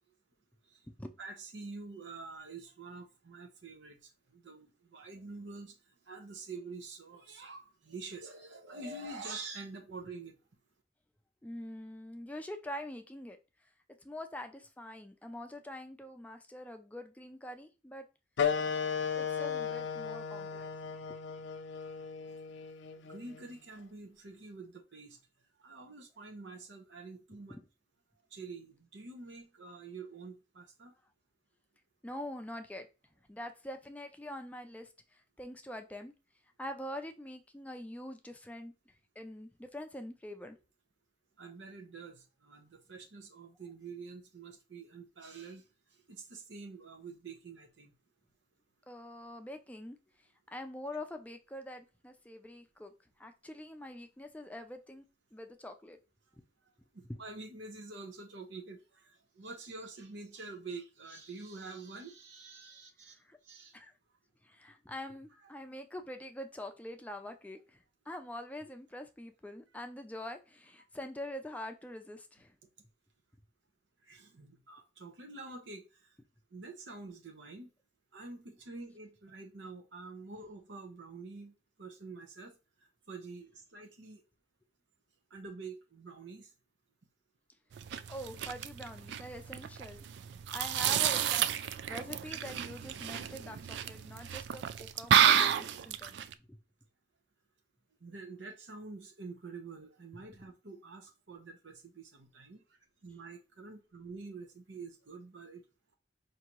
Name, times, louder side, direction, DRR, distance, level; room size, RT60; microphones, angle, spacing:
voice 1, 1.2-4.0 4.3-5.7 6.1-10.4 23.1-25.2 25.6-27.6 28.3-30.9 41.4-45.6 46.1-47.9 56.9-59.1 59.4-63.1 63.4-63.7 74.1-75.9 76.5-77.7 78.1-81.5 81.8-82.5 83.1-84.2 85.3-86.5 98.0-102.6 103.0-105.6, right 3 dB, 80° right, 0.8 m, -47 dB
voice 2, 11.4-13.4 14.0-18.1 19.2-20.7 21.1-21.2 27.5-27.6 32.0-32.9 33.3-36.1 36.6-38.7 39.2-40.6 48.9-50.0 50.5-52.9 53.2-55.0 55.3-56.0 56.4-56.5 57.1-57.2 63.2-63.4 63.7-63.9 64.4-72.5 88.1-90.1 90.5-91.5 91.9-96.2 96.5-96.6, left 1 dB, 10° left, 0.4 m, -44 dB
sound 1, 18.4-23.5, left 7 dB, 75° left, 0.4 m, -35 dB
sound 2, 87.7-96.3, right 9 dB, 65° right, 0.3 m, -30 dB
4.8 x 2.6 x 3.0 m
head